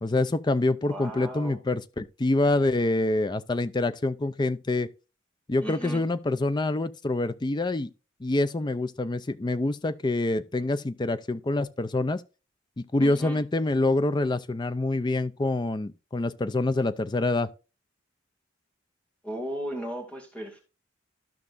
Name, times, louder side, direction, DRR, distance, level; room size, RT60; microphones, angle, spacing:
voice 1, 0.0-4.9 5.5-7.9 8.2-12.2 12.8-17.5, left 2 dB, 20° left, 0.4 m, -26 dB
voice 2, 0.9-1.6 5.6-6.0 13.0-13.4 19.2-20.6, right 1 dB, 5° left, 2.2 m, -36 dB
13.0 x 5.9 x 2.5 m
head